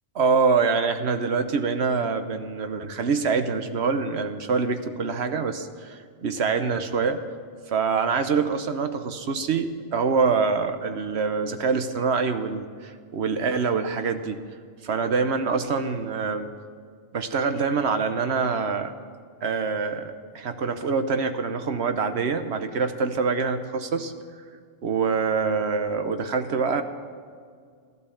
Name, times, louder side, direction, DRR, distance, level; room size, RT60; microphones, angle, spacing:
voice 1, 0.2-7.2 7.7-14.4 14.8-16.5 17.1-18.9 19.4-24.1 24.8-26.8, right 5 dB, 85° right, 8 dB, 1.2 m, -25 dB
15.0 x 12.0 x 7.1 m, 2.1 s
omnidirectional pair, 1.1 m